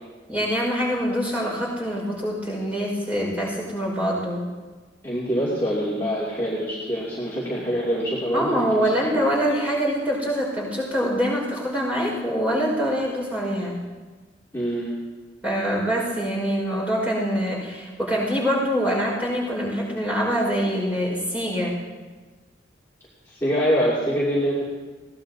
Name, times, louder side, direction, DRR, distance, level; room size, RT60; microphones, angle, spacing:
voice 1, 0.3-4.4 8.3-13.8 15.4-21.8, equal, 10° right, -4 dB, 5.1 m, -24 dB
voice 2, 5.0-8.7 14.5-14.9 23.3-24.6, equal, 15° left, -9 dB, 2.7 m, -24 dB
21.5 x 17.0 x 2.8 m, 1.3 s
head